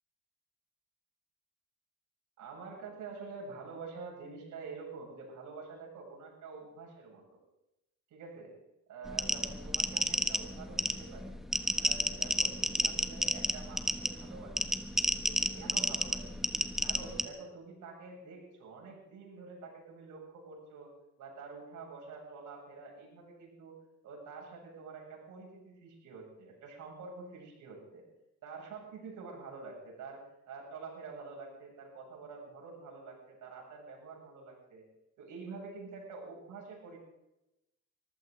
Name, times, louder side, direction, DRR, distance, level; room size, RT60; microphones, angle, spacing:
voice 1, 2.4-7.4 8.1-8.5 8.9-11.4 11.8-14.7 15.2-16.4 16.8-20.9 21.2-23.8 24.0-28.0 28.4-34.8 35.2-37.0, right 4 dB, 80° right, -1 dB, 7.8 m, -47 dB
sound 1, 9.1-17.2, equal, ahead, 1.4 m, -31 dB
23.5 x 15.0 x 4.0 m, 0.90 s
cardioid pair, 90°, 30 cm